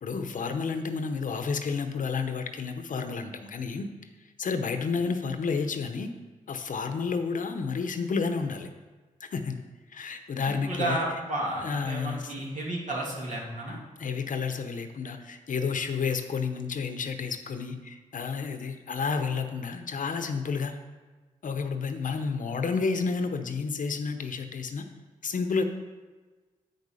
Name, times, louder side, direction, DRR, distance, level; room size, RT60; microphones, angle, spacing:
voice 1, 0.0-3.9 4.4-6.1 6.5-8.7 9.2-9.6 9.9-11.0 11.6-12.3 14.0-20.8 21.4-24.9 25.2-25.6, left 5 dB, 65° left, 7 dB, 0.9 m, -30 dB
voice 2, 10.5-13.8, right 1 dB, 60° right, -2 dB, 2.3 m, -32 dB
8.1 x 6.8 x 4.9 m, 1.3 s
cardioid pair, 65°, 14 cm